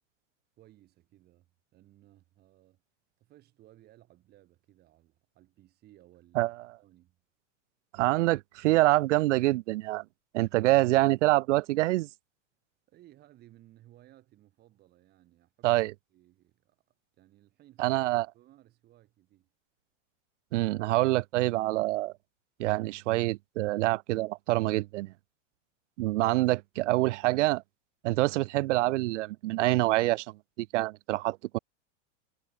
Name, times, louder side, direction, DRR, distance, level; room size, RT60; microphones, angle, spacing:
voice 1, 0.6-2.8 3.2-7.2 12.9-15.8 16.1-16.8 17.2-18.0 18.3-19.5, right 14 dB, 25° right, 3.8 m, -59 dB
voice 2, 7.9-10.0 10.3-12.1 15.6-15.9 17.8-18.3 20.5-22.1 22.6-25.1 26.0-27.6 28.0-31.6, right 19 dB, 65° right, 0.6 m, -26 dB
supercardioid pair, 170°, 38 cm